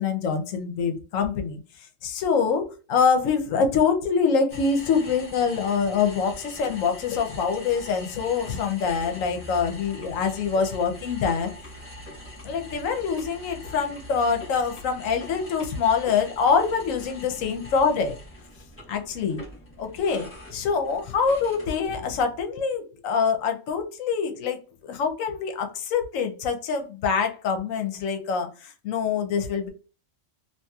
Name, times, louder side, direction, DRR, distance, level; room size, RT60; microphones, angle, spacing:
voice 1, 0.0-1.6 2.0-11.5 12.4-18.2 18.9-19.4 19.8-29.7, left 5 dB, 75° left, 6 dB, 1.0 m, -25 dB
sound 1, 4.5-22.2, left 1 dB, 10° left, 0.9 m, -43 dB
2.8 x 2.8 x 2.2 m, 0.35 s
omnidirectional pair, 1.4 m